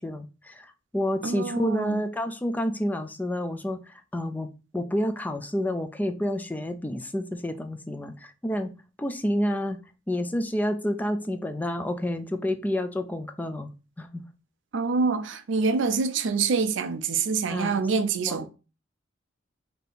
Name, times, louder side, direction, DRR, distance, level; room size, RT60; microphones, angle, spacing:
voice 1, 0.0-4.5 4.7-8.7 9.0-9.8 10.1-13.7 14.0-14.2 17.5-17.8 18.3-18.4, equal, 10° left, 0.3 m, -29 dB
voice 2, 1.2-2.0 14.7-18.5, right 4 dB, 70° right, 0.5 m, -26 dB
3.6 x 2.8 x 3.9 m
head